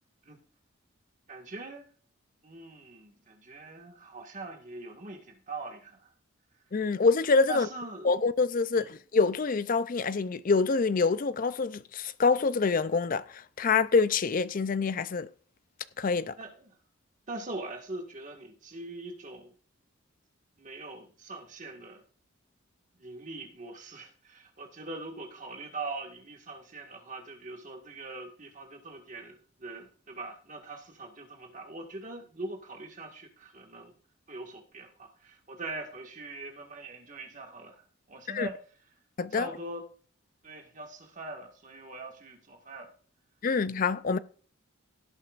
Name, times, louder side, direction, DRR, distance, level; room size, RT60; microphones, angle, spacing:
voice 1, 1.3-1.9 2.4-6.1 7.5-8.1 8.7-8.9 16.4-16.8 17.3-19.5 20.6-22.0 23.0-33.9 34.3-38.6 39.3-39.9 40.4-42.9, right 2 dB, 40° right, 1.7 m, -42 dB
voice 2, 6.7-7.7 8.0-15.3 16.0-16.4 38.3-38.5 39.2-39.5 43.4-44.2, left 4 dB, 40° left, 0.4 m, -26 dB
17.0 x 8.6 x 2.5 m
head